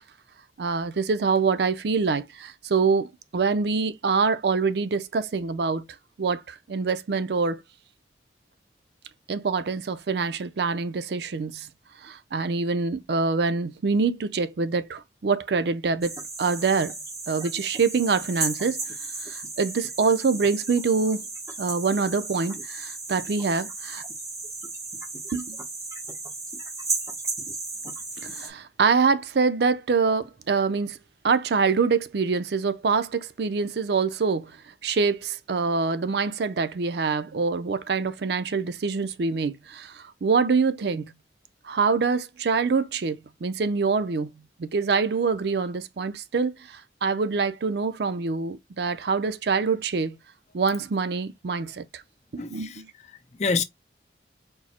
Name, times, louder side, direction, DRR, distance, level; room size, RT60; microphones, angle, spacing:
voice 1, 0.6-5.8 6.2-7.6 9.3-11.7 12.0-17.0 17.3-18.8 19.2-21.3 21.6-24.0 25.3-25.6 28.3-31.0 31.2-34.5 34.8-41.1 41.6-44.3 44.6-50.2 50.5-52.0 52.3-52.7, right 4 dB, 70° right, 0.5 m, -25 dB
sound 1, 16.0-28.5, right 3 dB, 15° right, 1.0 m, -34 dB
voice 2, 52.4-53.6, left 4 dB, 40° left, 0.6 m, -29 dB
4.5 x 2.1 x 4.2 m
head